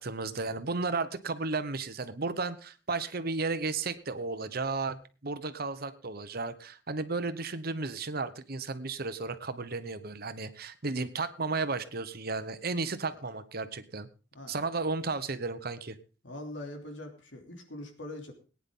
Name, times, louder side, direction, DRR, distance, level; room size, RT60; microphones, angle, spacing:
voice 1, 0.0-14.1 14.5-16.0, right 3 dB, 55° right, 11 dB, 1.1 m, -34 dB
voice 2, 16.2-18.3, left 1 dB, 85° left, 3 dB, 3.0 m, -42 dB
19.0 x 9.9 x 3.8 m, 0.36 s
head